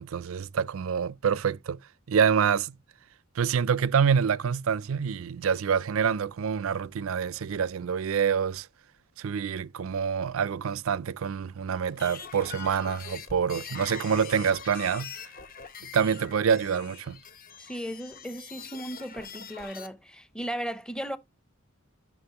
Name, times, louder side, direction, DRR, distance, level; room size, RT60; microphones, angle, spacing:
voice 1, 0.0-1.8 2.1-2.7 3.4-8.7 9.2-15.1 15.9-17.2, right 7 dB, 70° right, 0.4 m, -26 dB
sound 1, 11.9-19.9, left 7 dB, 45° left, 1.0 m, -43 dB
voice 2, 17.6-21.2, equal, 5° left, 0.7 m, -36 dB
11.5 x 6.3 x 2.9 m
head